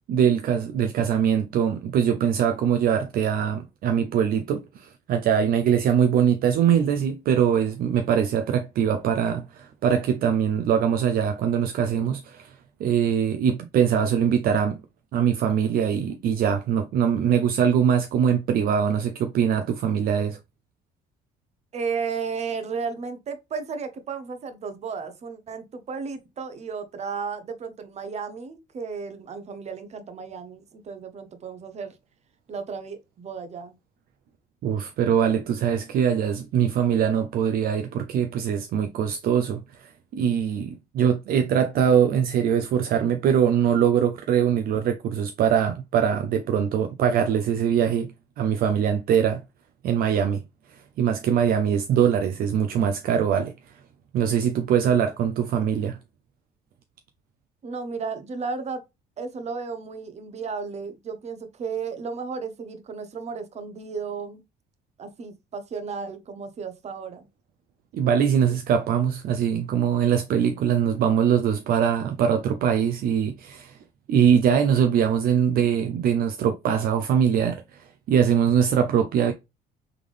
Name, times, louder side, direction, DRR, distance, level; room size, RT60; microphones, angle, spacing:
voice 1, 0.1-12.5 12.8-14.8 15.1-20.4 34.6-49.4 49.8-50.4 50.7-53.5 54.1-56.0 67.9-73.8 74.1-79.3, right 8 dB, 60° right, 0.5 m, -22 dB
voice 2, 21.7-31.9 32.5-33.8 57.6-58.8 59.2-64.4 65.0-67.3, right 5 dB, 40° right, 0.8 m, -34 dB
3.6 x 3.5 x 3.2 m
cardioid pair, 110°, 17 cm